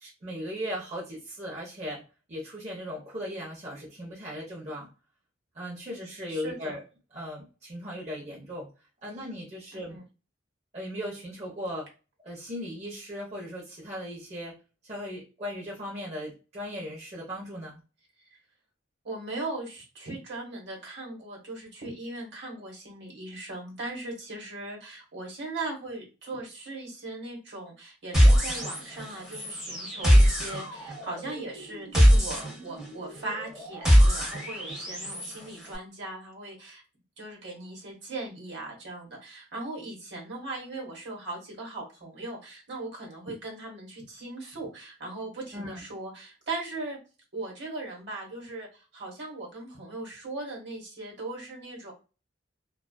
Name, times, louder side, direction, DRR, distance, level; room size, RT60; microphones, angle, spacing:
voice 1, 0.0-2.0 2.3-4.9 5.5-6.8 7.1-8.7 9.0-10.0 10.7-11.9 12.2-14.6 14.8-17.8 45.5-45.8, equal, 35° right, -5 dB, 0.6 m, -37 dB
voice 2, 6.3-6.8 9.7-10.0 18.3-18.4 19.0-36.8 37.2-47.0 47.3-51.9, right 2 dB, 65° right, -1 dB, 1.1 m, -39 dB
sound 1, 28.1-29.1 29.3-35.3, equal, 5° right, 0.8 m, -22 dB
2.4 x 2.3 x 2.2 m, 0.32 s
head